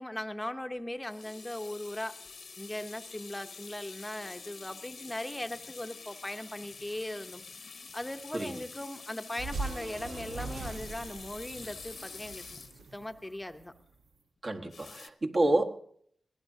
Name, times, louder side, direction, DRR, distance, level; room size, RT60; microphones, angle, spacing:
voice 1, 0.0-2.2 2.6-7.4 7.9-12.6 12.9-13.7, left 1 dB, 15° left, 7 dB, 0.7 m, -39 dB
sound 1, 1.0-13.4 14.7-15.1, left 4 dB, 65° left, 1.0 m, -47 dB
sound 2, 9.4-13.8, right 3 dB, 85° right, 1.1 m, -41 dB
voice 2, 14.4-15.8, right 2 dB, 50° right, 3 dB, 1.4 m, -29 dB
22.5 x 17.0 x 2.7 m, 0.65 s
cardioid pair, 60°, 0 cm